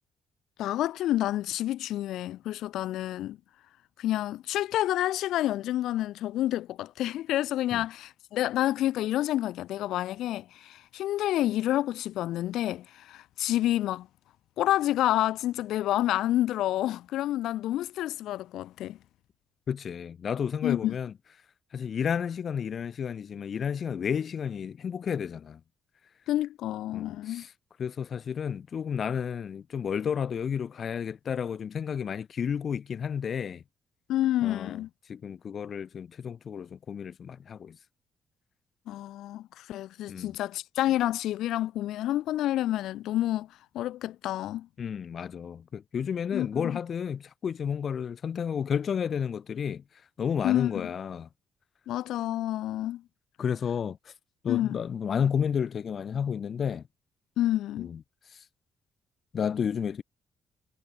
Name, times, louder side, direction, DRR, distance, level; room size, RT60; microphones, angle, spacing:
voice 1, 0.6-3.4 4.0-14.1 14.6-19.0 20.6-21.0 26.3-27.4 34.1-34.9 38.9-43.5 43.7-44.7 46.3-46.7 50.4-50.9 51.9-53.0 54.5-54.8 57.4-57.9, left 14 dB, 85° left, 0.8 m, -29 dB
voice 2, 19.7-21.1 21.7-25.6 26.9-27.5 27.8-33.6 34.4-34.8 35.1-37.8 40.1-40.3 44.8-49.8 50.2-51.3 53.4-54.0 54.4-56.8 57.8-58.0 58.3-58.4 59.3-60.0, left 7 dB, 50° left, 2.3 m, -31 dB
cardioid pair, 90°, 0 cm